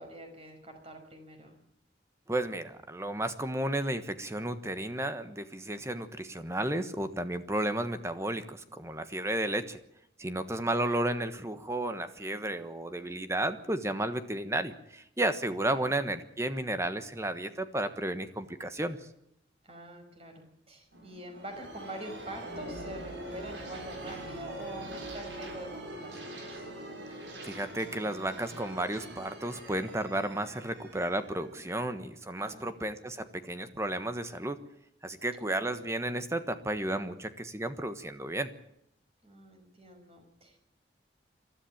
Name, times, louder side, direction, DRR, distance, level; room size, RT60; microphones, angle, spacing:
voice 1, 0.0-1.6 15.7-15.9 19.6-26.7 32.4-32.8 35.4-35.7 39.2-40.6, right 1 dB, 35° right, 5 dB, 5.6 m, -45 dB
voice 2, 2.3-9.8 10.2-19.0 27.4-34.6 35.0-38.5, right 1 dB, 15° right, 10 dB, 1.3 m, -33 dB
sound 1, 20.9-32.4, right 1 dB, 90° right, 7.0 m, -43 dB
23.5 x 13.5 x 8.8 m, 0.77 s
head